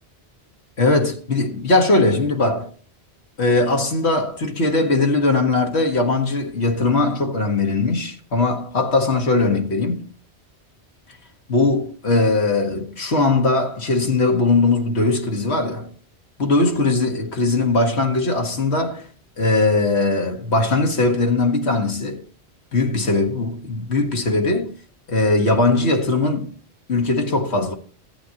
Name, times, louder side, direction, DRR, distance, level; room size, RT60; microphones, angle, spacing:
voice 1, 0.8-2.7 3.4-10.1 11.5-15.9 16.4-19.1 19.4-22.2 22.7-24.7 25.1-26.5 26.9-27.7, left 2 dB, 75° left, 1.9 m, -20 dB
14.0 x 9.0 x 2.9 m
omnidirectional pair, 1.1 m